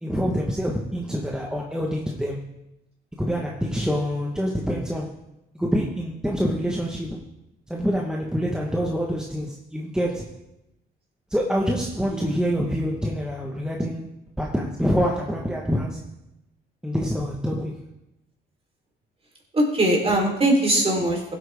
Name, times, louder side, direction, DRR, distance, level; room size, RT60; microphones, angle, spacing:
voice 1, 0.0-2.4 3.2-5.1 5.5-7.2 7.7-10.3 11.3-14.1 14.4-16.0 16.8-17.9, equal, 5° right, -1 dB, 1.3 m, -26 dB
voice 2, 19.5-21.3, right 1 dB, 30° right, 0 dB, 3.8 m, -21 dB
16.0 x 8.2 x 3.6 m, 0.92 s
cardioid pair, 90°, 20 cm